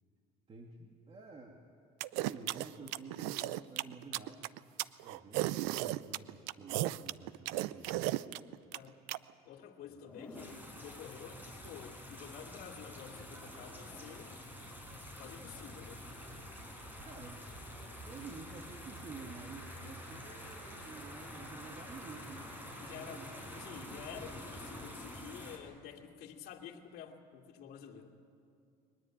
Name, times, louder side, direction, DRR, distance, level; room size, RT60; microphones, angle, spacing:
voice 1, 0.5-1.6 2.1-4.5 5.0-8.1 9.9-10.3 14.5-14.7 17.0-17.5 18.0-24.0, right 4 dB, 35° right, 1 dB, 2.1 m, -51 dB
sound 1, 2.0-9.2, right 16 dB, 85° right, 0.6 m, -35 dB
voice 2, 9.4-14.6 15.2-16.1 22.8-28.1, left 8 dB, 60° left, 0 dB, 2.4 m, -50 dB
Zipper (clothing), 9.9-10.7 12.8-14.1 16.0-16.3, left 2 dB, 5° left, 3.2 m, -55 dB
sound 2, 10.3-25.6, equal, 10° right, 5.4 m, -48 dB
22.5 x 20.0 x 8.9 m, 2.3 s
cardioid pair, 105°, 17 cm